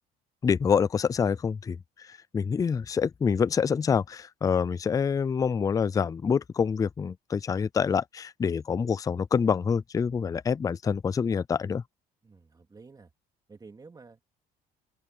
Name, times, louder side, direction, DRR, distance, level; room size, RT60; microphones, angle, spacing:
voice 1, 0.4-11.8, left 6 dB, 20° left, 0.4 m, -26 dB
voice 2, 12.2-13.1 13.5-14.4, right 4 dB, 25° right, 2.8 m, -51 dB
open air
cardioid pair, 110°, 17 cm